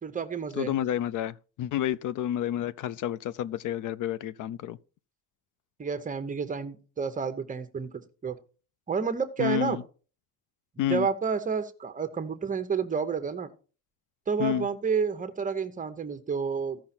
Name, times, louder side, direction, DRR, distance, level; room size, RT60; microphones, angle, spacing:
voice 1, 0.0-0.7 5.8-7.9 8.2-8.4 8.9-9.8 10.8-13.5 14.3-16.8, right 6 dB, 25° right, 0.8 m, -30 dB
voice 2, 0.6-4.8 9.4-9.8 10.8-11.1 14.4-14.7, left 11 dB, 60° left, 0.5 m, -30 dB
15.0 x 5.9 x 4.3 m
cardioid pair, 155°, 34 cm